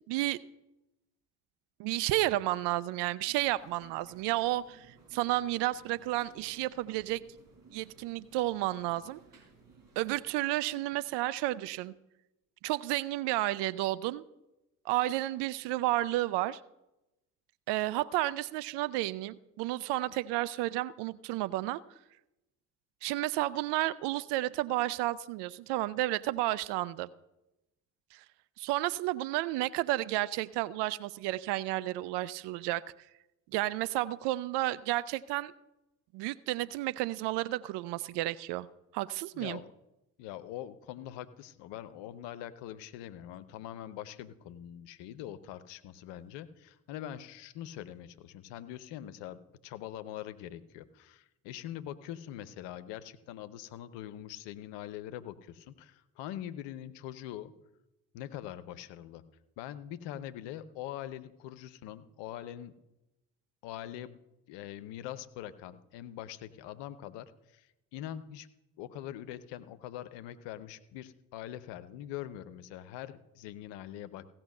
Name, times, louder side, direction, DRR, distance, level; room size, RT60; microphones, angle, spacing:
voice 1, 0.1-0.4 1.8-7.2 7.7-9.2 10.0-11.9 12.6-14.2 14.9-16.6 17.7-21.8 23.0-27.1 28.1-28.2 28.6-32.8 33.5-35.5 36.1-38.7 38.9-39.6, right 17 dB, 65° right, 18 dB, 0.6 m, -31 dB
sound 1, 3.3-10.2, right 3 dB, 45° right, 3.8 m, -59 dB
voice 2, 39.3-39.7 40.2-57.5 58.1-59.2 59.6-62.8 63.6-64.2 64.5-67.7 67.9-68.5 68.8-74.3, left 12 dB, 65° left, 14 dB, 0.8 m, -43 dB
16.0 x 5.8 x 6.6 m, 0.95 s
figure-of-eight pair, 40°, 45 cm